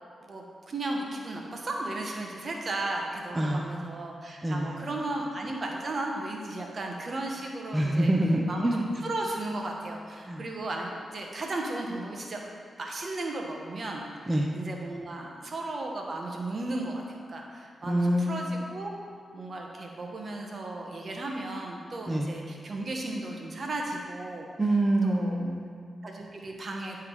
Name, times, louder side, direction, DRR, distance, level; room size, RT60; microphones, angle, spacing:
voice 1, 0.3-8.1 8.5-12.4 12.8-18.9 19.3-24.5 25.0-25.4 26.0-27.0, right 2 dB, 55° right, 0 dB, 1.2 m, -35 dB
voice 2, 3.3-3.7 4.4-4.8 7.7-8.8 10.3-10.4 14.3-14.5 17.9-18.5 22.1-22.3 24.6-25.9, right 1 dB, 20° right, 0 dB, 0.8 m, -26 dB
11.0 x 3.6 x 4.8 m, 2.2 s
cardioid pair, 55°, 0 cm